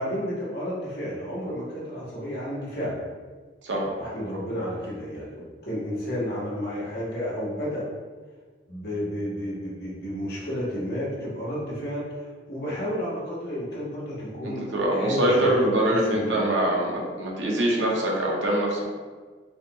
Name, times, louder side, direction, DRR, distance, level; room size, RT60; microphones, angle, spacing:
voice 1, 0.0-3.0 3.8-7.8 8.7-16.4, equal, 55° left, -7 dB, 1.2 m, -32 dB
voice 2, 14.4-18.9, right 1 dB, 80° right, -2 dB, 0.8 m, -24 dB
4.0 x 2.4 x 2.9 m, 1.5 s
head